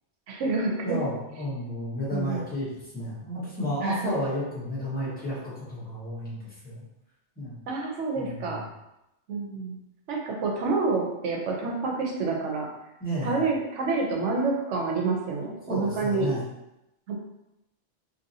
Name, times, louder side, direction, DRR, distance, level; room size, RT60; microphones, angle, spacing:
voice 1, 0.3-1.0 2.1-2.4 3.8-4.1 7.7-8.6 9.3-9.8 10.1-12.7 13.2-16.3 17.1-17.2, right 3 dB, 90° right, 0 dB, 1.0 m, -28 dB
voice 2, 0.8-2.7 2.9-6.8 7.4-7.6 8.1-8.6 13.0-13.4 15.7-16.4, left 1 dB, 10° left, -11 dB, 1.3 m, -32 dB
2.8 x 2.7 x 2.6 m, 0.88 s
omnidirectional pair, 1.2 m